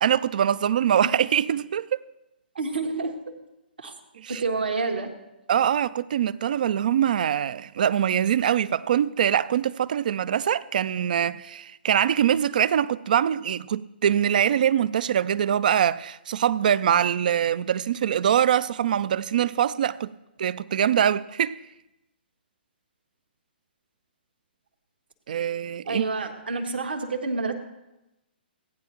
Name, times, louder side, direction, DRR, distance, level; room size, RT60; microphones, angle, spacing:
voice 1, 0.0-2.0 4.2-4.4 5.5-20.1 20.4-21.6 25.3-26.1, right 9 dB, 50° right, 0.4 m, -23 dB
voice 2, 2.5-3.4 3.8-4.0 4.3-5.2 25.8-27.5, right 3 dB, 70° right, 1.3 m, -29 dB
17.0 x 9.7 x 3.0 m
figure-of-eight pair, 125°, 6 cm